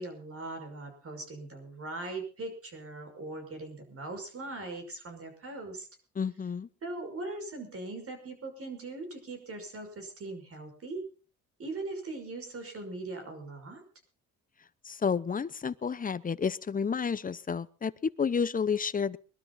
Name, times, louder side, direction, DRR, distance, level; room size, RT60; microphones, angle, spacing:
voice 1, 0.0-5.9 6.8-11.0 11.6-13.8, right 2 dB, 50° right, 6 dB, 6.1 m, -40 dB
voice 2, 6.2-6.7 14.9-19.2, left 6 dB, 30° left, 17 dB, 0.8 m, -30 dB
21.5 x 12.5 x 4.2 m, 0.37 s
cardioid pair, 90°, 30 cm